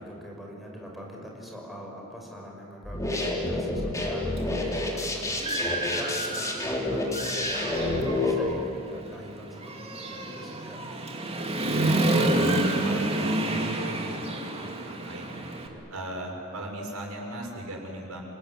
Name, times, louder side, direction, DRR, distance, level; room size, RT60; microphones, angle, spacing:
voice 1, 0.0-10.8 15.7-15.8, equal, ahead, -2 dB, 5.8 m, -43 dB
sound 1, 2.8-8.3, left 2 dB, 15° left, 3.9 m, -28 dB
Human voice / Motorcycle, 4.4-4.5 5.0-6.7 7.1-15.7, right 2 dB, 30° right, 2.6 m, -29 dB
voice 2, 11.6-15.5 15.9-18.3, right 1 dB, 85° right, 0 dB, 6.6 m, -38 dB
29.0 x 20.5 x 10.0 m, 2.7 s
head